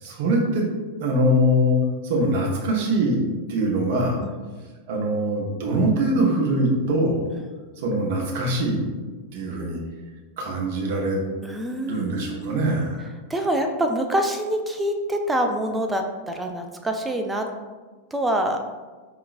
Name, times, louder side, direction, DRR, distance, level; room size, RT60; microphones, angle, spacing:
voice 1, 0.0-0.7 1.0-1.8 2.0-3.2 3.5-4.2 4.9-7.2 7.8-8.8 9.3-9.8 10.4-11.2 11.8-13.1, right 1 dB, 50° right, -1 dB, 0.8 m, -22 dB
voice 2, 11.4-12.7 13.3-17.5 18.1-18.6, right 1 dB, 10° right, 5 dB, 0.3 m, -26 dB
4.9 x 2.9 x 2.4 m, 1.4 s
figure-of-eight pair, 90°, 0 cm